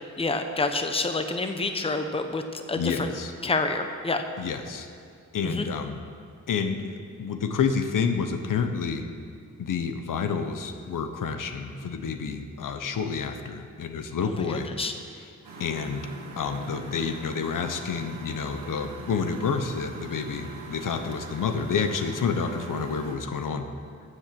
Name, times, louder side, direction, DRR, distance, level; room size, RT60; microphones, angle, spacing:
voice 1, 0.2-3.1 3.4-4.2 5.4-5.7 14.2-14.9, left 3 dB, 20° left, 6 dB, 0.8 m, -28 dB
voice 2, 2.8-3.3 4.4-4.9 5.3-6.0 6.5-9.1 9.6-14.7 15.6-16.1 16.4-23.7, left 5 dB, 80° left, 7 dB, 1.0 m, -29 dB
Engine, 15.4-23.2, right 3 dB, 85° right, 1.9 m, -42 dB
13.0 x 7.9 x 7.6 m, 2.3 s
wide cardioid pair, 145°, 31 cm